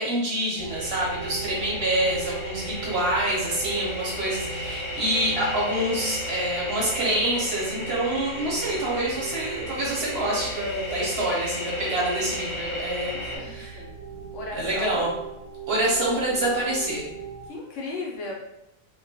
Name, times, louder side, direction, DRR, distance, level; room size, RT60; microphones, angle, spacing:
voice 1, 0.0-13.8 14.5-15.1 15.7-17.0, right 1 dB, 55° right, -5 dB, 0.8 m, -26 dB
sound 1, 0.6-17.5, right 5 dB, 90° right, 1.0 m, -39 dB
sound 2, 0.7-13.4, left 1 dB, 15° right, 0.8 m, -35 dB
voice 2, 13.0-13.9 14.3-15.1 17.5-18.3, left 3 dB, 70° left, -2 dB, 0.9 m, -37 dB
2.3 x 2.2 x 2.6 m, 0.92 s
omnidirectional pair, 1.4 m